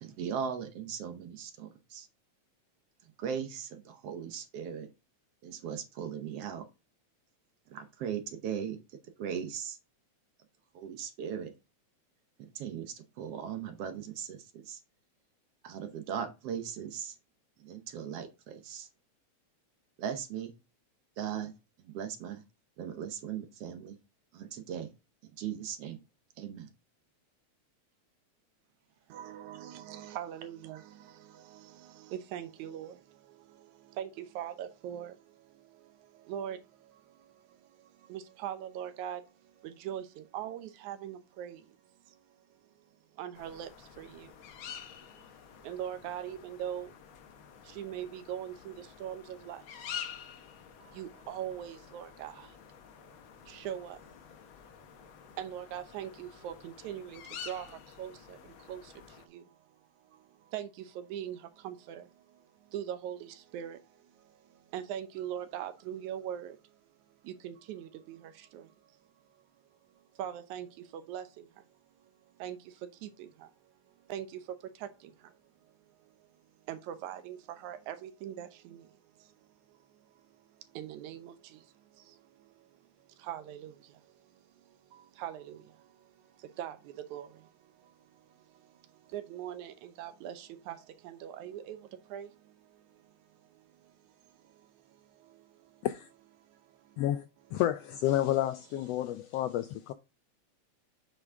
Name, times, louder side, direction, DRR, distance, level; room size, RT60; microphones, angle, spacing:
voice 1, 0.0-2.1 3.2-4.9 5.4-6.6 7.7-8.8 9.2-9.8 10.7-11.5 12.4-14.8 15.6-17.2 17.6-18.9 20.0-20.5 21.2-21.5 21.8-22.4 22.8-24.0 24.3-24.9 25.2-26.0 26.4-26.7, right 8 dB, 65° right, 1.7 m, -38 dB
voice 2, 29.1-41.8 42.1-42.3 43.2-44.3 45.6-46.9 47.6-49.9 50.8-52.6 53.4-54.2 54.9-55.1 55.4-59.5 60.1-62.4 62.7-64.0 64.4-66.6 67.2-68.7 70.2-71.6 72.4-73.5 74.1-75.3 76.7-79.3 80.7-81.7 81.9-82.6 83.2-84.1 84.9-93.0 93.5-93.7 94.4-95.9 96.4-97.0, right 10 dB, 85° right, 2.3 m, -42 dB
sound 1, 43.3-59.3, left 9 dB, 65° left, 1.3 m, -48 dB
voice 3, 97.5-99.9, left 12 dB, 80° left, 1.4 m, -30 dB
8.3 x 5.3 x 3.6 m
omnidirectional pair, 3.3 m